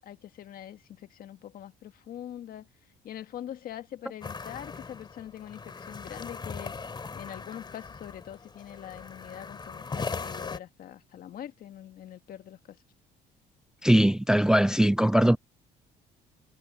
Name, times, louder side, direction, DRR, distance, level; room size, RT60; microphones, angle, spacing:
voice 1, 0.0-2.7 3.0-6.8 7.1-12.8, left 11 dB, 60° left, 1.7 m, -43 dB
sound 1, 4.2-10.6, left 4 dB, 25° left, 2.8 m, -39 dB
voice 2, 13.8-15.4, right 1 dB, 5° right, 0.4 m, -21 dB
cardioid pair, 110°, 17 cm